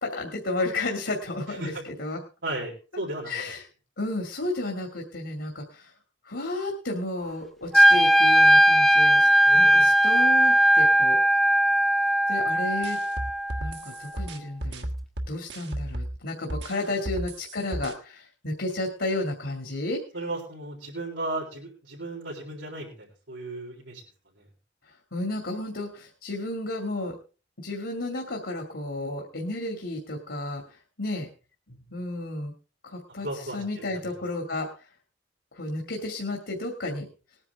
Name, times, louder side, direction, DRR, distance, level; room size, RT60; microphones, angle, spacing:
voice 1, 0.0-2.2 3.3-3.6 4.0-5.9 6.3-9.3 9.5-11.2 12.3-13.0 13.6-14.8 15.3-20.0 25.1-27.2 27.6-31.3 31.9-32.5 32.8-34.7 35.5-37.1, left 2 dB, 70° left, 1 dB, 2.3 m, -32 dB
voice 2, 1.5-1.8 2.4-3.3 9.5-9.8 20.1-24.0 24.4-24.5 33.2-33.9, right 2 dB, 90° right, -6 dB, 3.9 m, -35 dB
Wind instrument woodwind instrument, 7.7-13.8, equal, ahead, 0.9 m, -19 dB
sound 1, 12.8-16.2 16.5-17.9, right 1 dB, 65° right, 1.6 m, -33 dB
19.5 x 9.8 x 3.5 m, 0.34 s
head